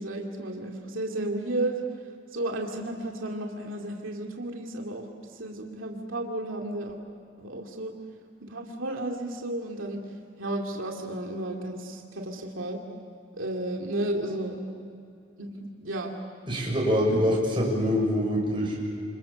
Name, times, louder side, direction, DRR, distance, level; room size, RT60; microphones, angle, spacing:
voice 1, 0.0-1.8 2.3-7.0 7.4-8.0 8.4-10.0 10.4-12.8 13.3-14.7 15.4-16.1, right 1 dB, 90° right, 1 dB, 2.6 m, -33 dB
voice 2, 16.5-18.8, equal, 25° right, -2 dB, 6.7 m, -24 dB
28.0 x 27.5 x 7.0 m, 2.6 s
head